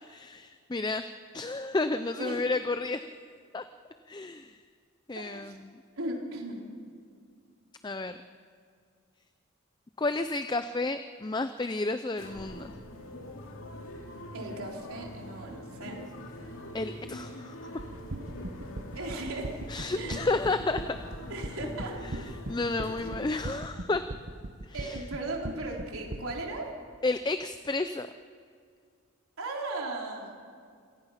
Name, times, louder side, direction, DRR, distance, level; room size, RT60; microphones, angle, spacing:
voice 1, 0.1-1.0 1.3-3.0 3.5-3.6 4.1-4.5 5.1-5.6 7.8-8.2 10.0-12.7 16.7-17.6 19.7-20.8 22.1-22.2 22.5-24.0 24.7-25.0 27.0-28.1, left 3 dB, 20° left, 10 dB, 0.4 m, -31 dB
voice 2, 5.2-5.6 6.0-6.7 14.3-16.0 18.9-19.6 20.0-20.3 21.3-22.0 22.9-23.2 24.7-26.7 29.4-30.3, right 2 dB, 80° right, 0 dB, 3.9 m, -37 dB
sound 1, 12.2-23.4, left 1 dB, 70° left, 2.6 m, -43 dB
sound 2, 17.8-26.3, right 1 dB, 50° right, 1.0 m, -38 dB
27.5 x 18.0 x 5.8 m, 2.2 s
head